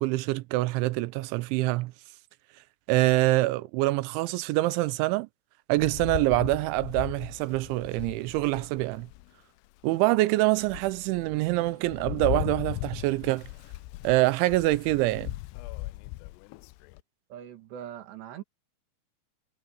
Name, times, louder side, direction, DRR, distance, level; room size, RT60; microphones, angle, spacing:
voice 1, 0.0-1.9 2.9-5.3 5.7-9.1 9.8-13.5 14.0-15.3, right 19 dB, 90° right, 3.1 m, -25 dB
Rain, 5.8-9.3 9.8-9.9 10.4-17.0, left 20 dB, 85° left, 2.4 m, -38 dB
voice 2, 17.3-18.4, right 10 dB, 70° right, 3.9 m, -41 dB
omnidirectional pair, 5.3 m